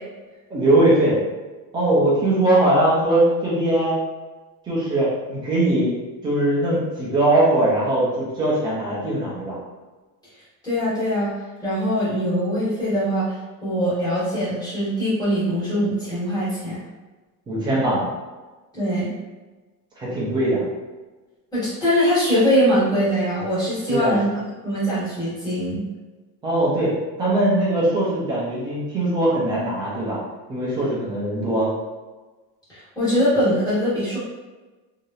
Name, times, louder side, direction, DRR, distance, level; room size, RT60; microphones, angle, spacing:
voice 1, 0.5-1.2 1.7-4.0 4.7-9.6 17.5-18.1 20.0-20.6 23.9-24.2 26.4-26.9 27.2-30.2 30.5-31.7, right 1 dB, 10° right, -7 dB, 0.3 m, -20 dB
voice 2, 10.6-11.3 11.6-13.3 13.6-16.8 18.7-19.1 21.5-24.3 24.6-25.8 32.7-34.2, equal, 10° left, -11 dB, 1.2 m, -22 dB
3.1 x 2.7 x 2.3 m, 1.2 s
cardioid pair, 175°, 42 cm